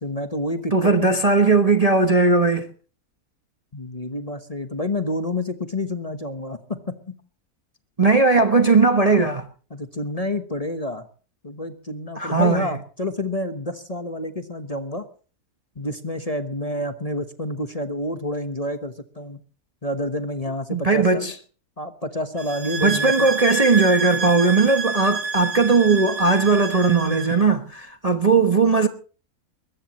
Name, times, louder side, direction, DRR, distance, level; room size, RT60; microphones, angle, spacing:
voice 1, 0.0-1.2 3.7-6.8 9.7-11.1 11.4-15.0 15.8-19.4 19.8-21.3 21.8-23.3, left 1 dB, 25° left, 1.1 m, -29 dB
voice 2, 0.7-2.7 8.0-9.4 12.2-12.8 20.7-21.3 22.8-28.9, right 4 dB, 30° right, 1.0 m, -18 dB
sound 1, 22.4-27.4, right 5 dB, 85° right, 2.3 m, -28 dB
21.5 x 19.5 x 3.1 m
omnidirectional pair, 1.6 m